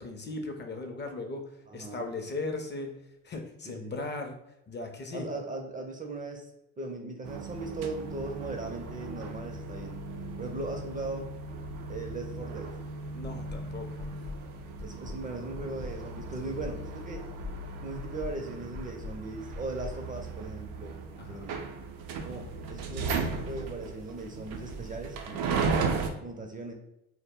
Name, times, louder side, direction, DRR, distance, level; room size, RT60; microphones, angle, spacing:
voice 1, 0.0-1.4 1.7-3.0 3.2-4.4 4.7-5.3 13.1-14.1 16.4-16.5 21.2-21.5 25.6-25.8, left 3 dB, 30° left, 4 dB, 0.5 m, -38 dB
voice 2, 1.7-2.0 3.6-3.9 5.1-6.5 6.8-10.0 10.4-11.3 11.9-12.7 14.8-17.3 17.8-21.6 22.2-26.7, right 2 dB, 25° right, 3 dB, 0.4 m, -39 dB
sound 1, 7.2-26.1, right 4 dB, 75° right, 0.5 m, -36 dB
sound 2, 13.2-13.6 14.0-14.4 14.7-15.2 15.5-16.0 16.3-16.8 17.1-17.6 17.9-18.3 18.7-19.2 19.5-20.7, left 3 dB, 85° left, 0.6 m, -42 dB
2.1 x 2.0 x 3.5 m, 0.86 s
supercardioid pair, 60°, 34 cm